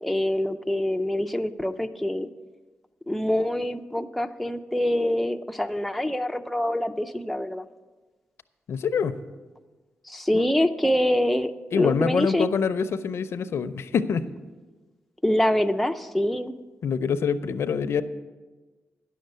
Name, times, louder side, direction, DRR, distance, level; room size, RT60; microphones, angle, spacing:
voice 1, 0.0-2.3 3.1-7.7 10.1-12.5 15.2-16.5, left 1 dB, ahead, 5 dB, 0.4 m, -25 dB
voice 2, 8.7-9.2 10.3-10.5 11.7-14.3 16.8-18.0, left 6 dB, 70° left, 11 dB, 0.5 m, -25 dB
10.5 x 6.5 x 7.9 m, 1.3 s
wide cardioid pair, 125°, 5 cm